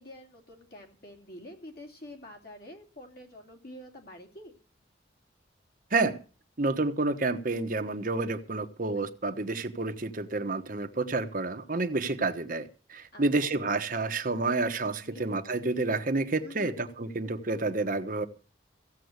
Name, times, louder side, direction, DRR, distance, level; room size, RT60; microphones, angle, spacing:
voice 1, 0.0-4.6 13.1-13.2 15.0-15.2 16.4-16.8, left 1 dB, 50° left, 1 dB, 3.0 m, -47 dB
voice 2, 6.6-18.3, right 3 dB, 45° right, 7 dB, 1.1 m, -29 dB
15.5 x 7.6 x 8.0 m, 0.37 s
head